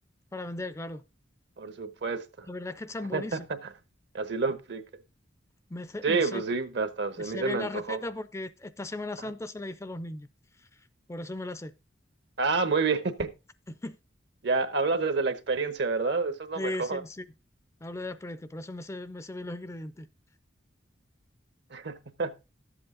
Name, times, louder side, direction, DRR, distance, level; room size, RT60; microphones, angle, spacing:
voice 1, 0.3-1.0 2.5-3.5 5.7-6.4 7.2-10.3 11.1-11.7 13.7-14.0 16.6-17.3 17.8-20.1, left 2 dB, 15° left, 0.4 m, -37 dB
voice 2, 1.6-2.5 3.1-3.4 4.1-4.8 6.0-8.0 12.4-13.3 14.4-17.0 21.7-22.3, right 4 dB, 65° right, 1.0 m, -28 dB
11.5 x 7.9 x 3.8 m
head